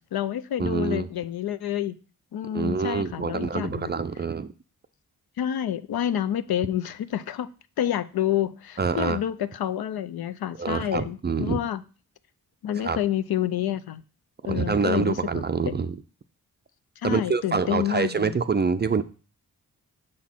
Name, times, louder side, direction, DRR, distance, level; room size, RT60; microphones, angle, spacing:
voice 1, 0.0-1.9 2.3-3.9 5.4-7.5 7.8-11.8 12.6-14.0 14.4-15.8 17.0-18.4, left 11 dB, 65° left, 13 dB, 0.5 m, -28 dB
voice 2, 0.6-1.1 2.5-4.5 8.8-9.2 10.6-11.6 12.8-13.0 14.4-16.0 17.0-19.0, right 5 dB, 25° right, 11 dB, 0.4 m, -26 dB
6.2 x 3.9 x 4.4 m, 0.37 s
supercardioid pair, 40°, 40 cm